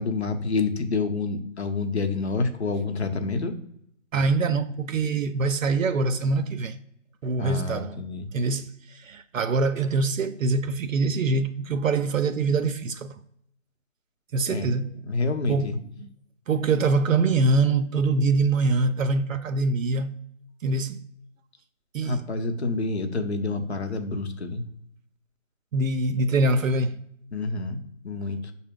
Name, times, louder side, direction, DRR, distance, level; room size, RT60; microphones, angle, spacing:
voice 1, 0.0-3.5 7.4-8.3 14.5-14.7 15.1-15.8 22.1-24.6 27.3-27.8 28.0-28.5, left 3 dB, 55° left, 0.7 m, -28 dB
voice 2, 4.1-6.8 7.2-8.0 8.3-13.1 14.3-15.0 15.5-16.1 16.5-20.2 20.6-21.0 21.9-22.3 25.7-27.0, right 3 dB, 80° right, 0.5 m, -24 dB
5.8 x 2.1 x 3.6 m
figure-of-eight pair, 160°, 39 cm